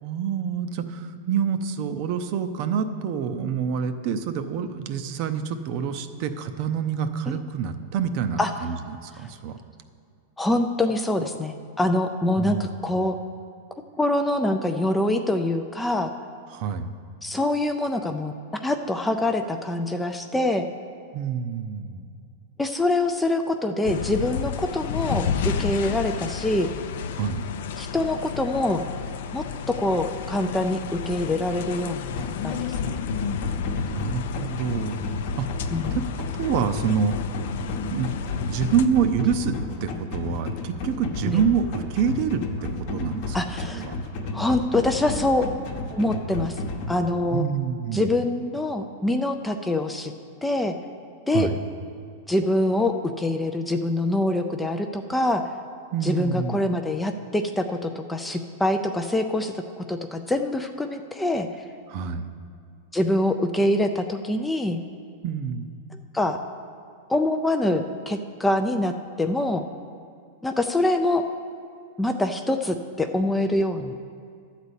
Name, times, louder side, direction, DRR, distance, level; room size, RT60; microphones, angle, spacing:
voice 1, 0.0-8.7 9.0-9.6 12.4-12.7 16.5-16.9 21.1-22.0 27.1-27.4 33.8-35.0 35.4-35.5 35.9-36.0 36.4-37.1 37.8-38.1 38.5-43.4 43.7-44.0 47.3-48.1 51.3-51.5 55.9-56.6 61.9-62.2 65.2-65.7, right 7 dB, 40° right, 9 dB, 0.6 m, -27 dB
voice 2, 10.4-13.2 14.0-16.1 17.2-20.7 22.6-26.7 27.8-28.8 29.3-33.0 35.7-36.0 41.2-41.4 43.3-43.8 44.3-45.5 45.9-46.6 46.9-47.4 47.9-50.1 50.4-50.7 51.3-51.5 52.3-55.4 56.0-61.5 62.9-64.8 66.1-66.4 67.1-69.6 70.4-71.3 72.0-74.0, left 1 dB, 5° left, 6 dB, 0.4 m, -25 dB
sound 1, 23.8-38.9, left 7 dB, 65° left, 0.5 m, -31 dB
sound 2, 32.2-46.9, left 3 dB, 45° left, 1.0 m, -32 dB
12.0 x 4.1 x 8.1 m, 2.3 s
supercardioid pair, 155°, 0 cm